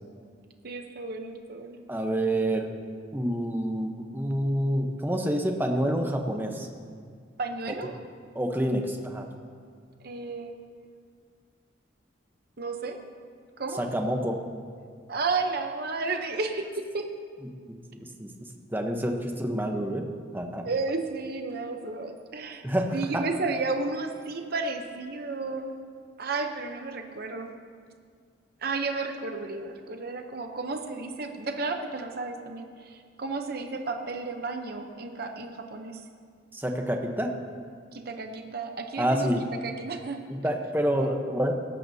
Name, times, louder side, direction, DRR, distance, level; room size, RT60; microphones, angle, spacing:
voice 1, 0.6-1.8 7.4-7.9 10.0-10.5 10.8-10.9 12.6-13.0 13.6-13.8 15.1-17.1 20.7-22.6 22.9-25.7 26.2-27.5 28.6-36.0 37.9-39.3 39.6-40.5 41.0-41.2, right 3 dB, 50° right, 5 dB, 0.7 m, -32 dB
voice 2, 1.9-2.7 3.1-6.7 8.3-9.3 13.7-14.4 17.7-20.1 20.3-20.7 22.6-23.2 36.5-37.3 39.0-39.5 40.3-41.5, right 1 dB, 10° right, 3 dB, 0.8 m, -28 dB
18.0 x 12.5 x 2.8 m, 2.1 s
head